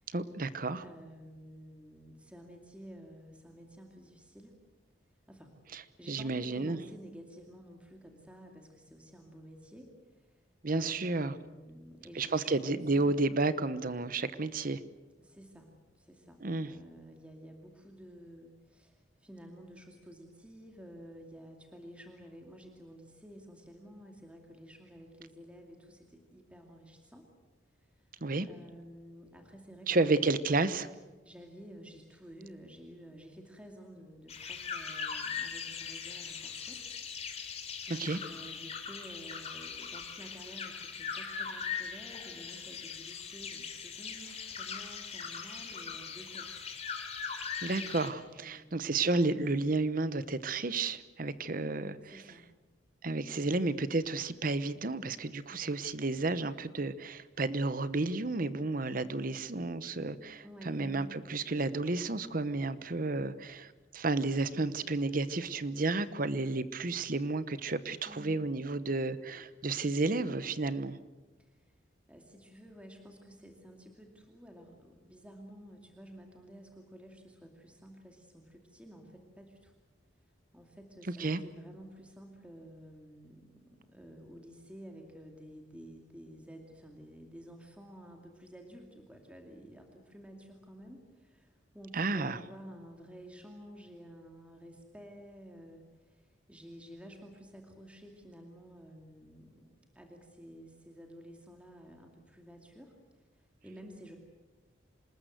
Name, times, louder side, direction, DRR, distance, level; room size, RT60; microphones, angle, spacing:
voice 1, 0.1-0.8 5.7-5.8 6.1-6.8 10.6-11.3 12.1-14.8 16.4-16.7 28.2-28.5 29.9-30.9 37.9-38.2 47.6-52.1 53.0-71.0 81.2-81.4 91.9-92.4, right 3 dB, 45° right, 14 dB, 0.9 m, -32 dB
voice 2, 0.8-4.5 5.3-10.5 10.7-13.1 15.2-27.3 27.8-28.1 28.5-30.4 31.2-36.8 37.9-46.6 47.1-47.2 47.7-48.8 52.0-52.5 60.4-61.2 68.1-68.5 71.4-71.7 72.1-79.7 80.5-104.2, equal, 5° right, 2 dB, 2.4 m, -52 dB
sound 1, 34.3-48.1, left 6 dB, 35° left, 3.1 m, -40 dB
26.5 x 20.5 x 8.0 m, 1.2 s
head